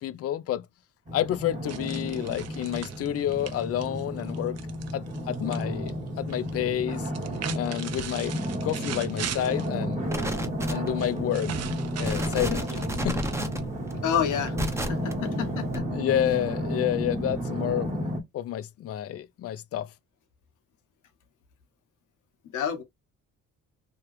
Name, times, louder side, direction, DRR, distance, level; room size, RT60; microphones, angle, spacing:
voice 1, 0.0-0.7 1.1-4.6 4.9-7.1 7.5-8.4 8.6-10.2 10.7-11.6 12.0-13.2 15.9-19.9, left 11 dB, 50° left, 0.4 m, -29 dB
sound 1, 1.1-18.2, equal, 25° right, 1.1 m, -32 dB
sound 2, 1.7-5.6 5.9-6.5 7.1-9.7 11.0-13.7, right 9 dB, 55° right, 0.6 m, -39 dB
sound 3, 10.1-11.1 11.6-11.7 12.0-15.1 15.7-15.8, right 1 dB, 10° right, 0.7 m, -32 dB
voice 2, 14.0-15.8 22.5-22.8, left 8 dB, 80° left, 1.1 m, -29 dB
3.0 x 2.4 x 3.1 m
cardioid pair, 90°, 30 cm